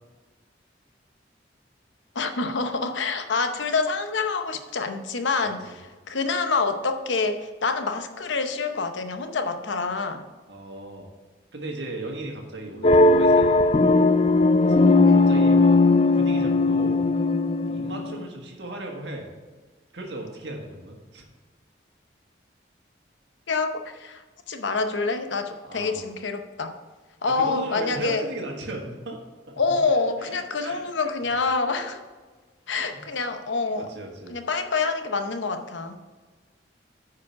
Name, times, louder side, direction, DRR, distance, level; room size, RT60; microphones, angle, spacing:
voice 1, 2.1-5.7 6.1-10.2 15.0-15.2 23.5-24.2 24.5-26.7 27.2-28.2 29.6-32.0 32.7-33.9 34.3-36.0, left 4 dB, 85° left, 7 dB, 0.8 m, -26 dB
voice 2, 10.5-11.1 11.5-13.8 14.6-15.8 16.1-17.1 17.7-19.3 19.9-21.2 25.6-26.0 27.3-29.2 29.5-30.9 32.8-33.0 33.7-34.4, right 1 dB, 70° right, 1 dB, 1.6 m, -37 dB
sound 1, 12.8-18.3, left 3 dB, 30° left, 0.4 m, -18 dB
9.4 x 4.9 x 5.8 m, 1.3 s
head